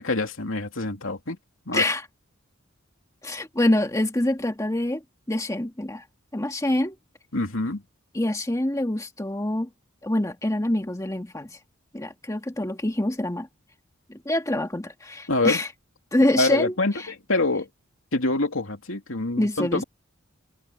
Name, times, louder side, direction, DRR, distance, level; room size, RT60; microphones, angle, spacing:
voice 1, 0.0-1.4 1.7-1.8 7.3-7.8 15.3-15.6 16.4-17.7 18.1-19.8, left 2 dB, 70° left, 3.0 m, -25 dB
voice 2, 1.7-2.1 3.2-5.0 5.3-6.0 6.3-7.0 8.1-9.7 10.0-11.6 11.9-13.5 14.1-15.7 16.1-17.1 19.4-19.8, left 1 dB, 15° left, 1.8 m, -25 dB
head